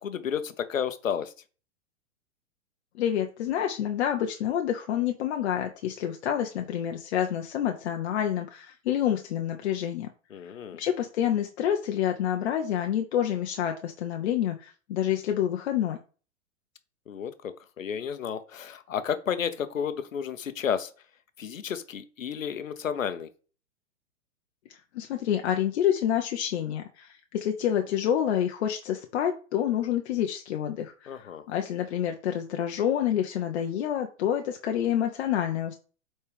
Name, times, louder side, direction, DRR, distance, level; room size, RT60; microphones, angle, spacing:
voice 1, 0.0-1.3 10.3-10.8 17.1-20.9 21.4-23.3 31.1-31.4, left 8 dB, 85° left, 11 dB, 1.1 m, -32 dB
voice 2, 3.0-10.1 10.8-16.0 24.9-35.8, left 10 dB, 60° left, 4 dB, 1.0 m, -28 dB
8.2 x 4.3 x 3.5 m, 0.37 s
hypercardioid pair, 120°, 38 cm